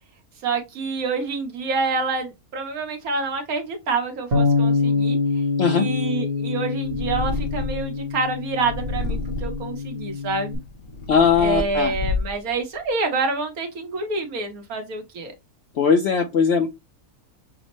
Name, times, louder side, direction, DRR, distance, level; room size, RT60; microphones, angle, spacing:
voice 1, 0.4-5.2 5.7-10.6 11.4-15.3, right 3 dB, 70° right, 1.4 m, -27 dB
Bass guitar, 4.3-10.6, left 4 dB, 45° right, 1.2 m, -25 dB
Purr, 6.8-7.9 8.6-9.7 10.4-12.5, left 2 dB, 25° left, 1.0 m, -29 dB
voice 2, 11.1-11.9 15.8-16.8, left 6 dB, 65° left, 0.6 m, -19 dB
6.2 x 2.1 x 2.9 m
omnidirectional pair, 1.6 m